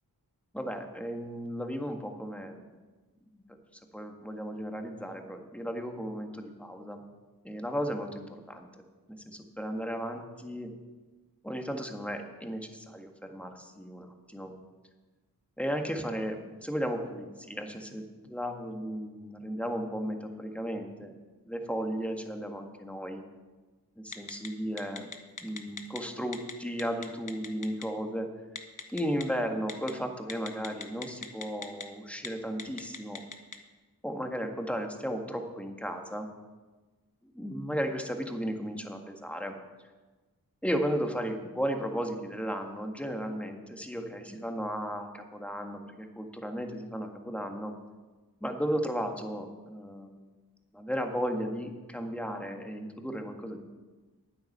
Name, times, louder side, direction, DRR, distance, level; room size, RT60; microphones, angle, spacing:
voice 1, 0.5-2.6 3.3-7.0 7.4-8.7 9.1-10.7 11.4-14.5 15.6-16.4 16.6-21.1 21.4-23.2 24.0-25.1 25.4-28.3 28.9-33.2 34.0-36.3 37.3-39.5 40.6-47.7 48.4-50.3 50.7-53.6, equal, 5° left, 4 dB, 1.7 m, -35 dB
Telephone, 24.1-24.5 24.8-26.0 26.3-26.5 26.8-27.8 28.6-29.2 29.7-29.9 30.3-31.8 32.1-32.3 32.6-33.6, left 5 dB, 55° left, 1.2 m, -38 dB
9.5 x 8.9 x 6.7 m, 1.3 s
cardioid pair, 45°, 38 cm